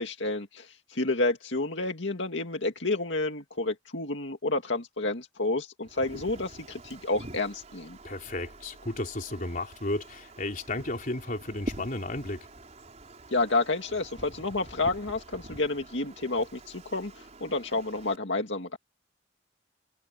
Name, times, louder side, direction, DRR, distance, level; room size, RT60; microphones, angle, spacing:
voice 1, 0.0-8.0 13.3-18.8, left 2 dB, 70° left, 2.3 m, -30 dB
Wind, 5.8-18.2, right 1 dB, 35° right, 4.9 m, -46 dB
voice 2, 8.0-12.5, left 2 dB, 45° left, 3.7 m, -33 dB
head